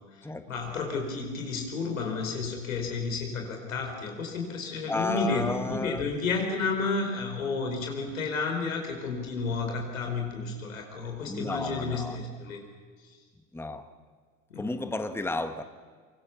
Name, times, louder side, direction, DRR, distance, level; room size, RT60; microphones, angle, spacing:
voice 1, 0.0-12.6 13.0-13.2 14.5-14.8, left 4 dB, 85° left, 3 dB, 5.2 m, -32 dB
voice 2, 4.9-6.0 11.3-12.3 13.5-13.9 14.6-15.6, left 2 dB, 5° left, 8 dB, 1.5 m, -32 dB
24.5 x 24.5 x 7.1 m, 1.5 s
hypercardioid pair, 80°, 39 cm